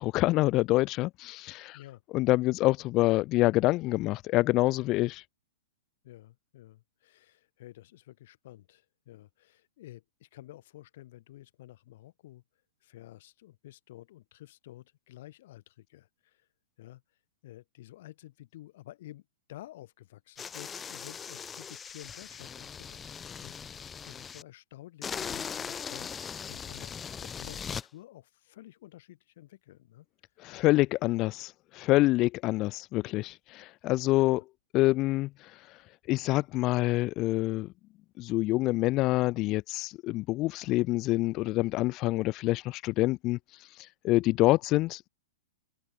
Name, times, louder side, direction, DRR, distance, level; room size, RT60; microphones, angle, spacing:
voice 1, 0.0-1.8 2.1-5.2 30.4-34.4 34.7-35.3 36.1-37.7 38.2-43.4 44.0-45.1, left 19 dB, 30° left, 0.9 m, -26 dB
voice 2, 6.0-12.4 12.8-16.5 16.8-17.0 17.4-30.1 32.2-32.3 34.3-34.4, left 15 dB, 55° left, 6.2 m, -51 dB
sound 1, 20.4-24.4 25.0-27.8, left 7 dB, 15° left, 2.1 m, -40 dB
hypercardioid pair, 150°, 0 cm